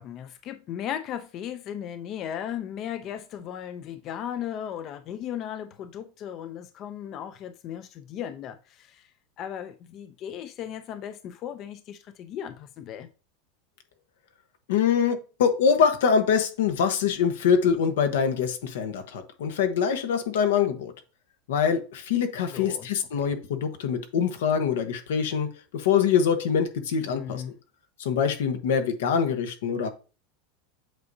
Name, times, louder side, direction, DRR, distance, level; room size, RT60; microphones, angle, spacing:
voice 1, 0.0-9.1 9.4-13.1 22.5-22.9 23.2-23.4 27.1-27.5, left 9 dB, 40° left, 0.5 m, -36 dB
voice 2, 14.7-20.9 21.5-25.5 25.7-27.4 28.0-29.9, left 7 dB, 85° left, 1.1 m, -24 dB
8.0 x 4.7 x 2.7 m
supercardioid pair, 140°, 0 cm